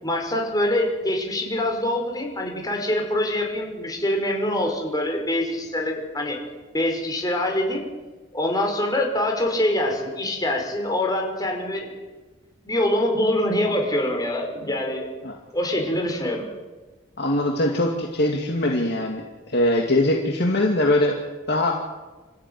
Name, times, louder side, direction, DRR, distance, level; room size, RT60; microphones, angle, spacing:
voice 1, 0.0-6.4 6.7-7.8 8.3-12.0 12.6-15.1 15.5-16.4, left 1 dB, 20° left, 1 dB, 5.3 m, -24 dB
voice 2, 17.2-21.2 21.5-22.0, left 1 dB, 60° left, 1 dB, 2.4 m, -22 dB
27.0 x 14.0 x 9.6 m, 1.2 s
head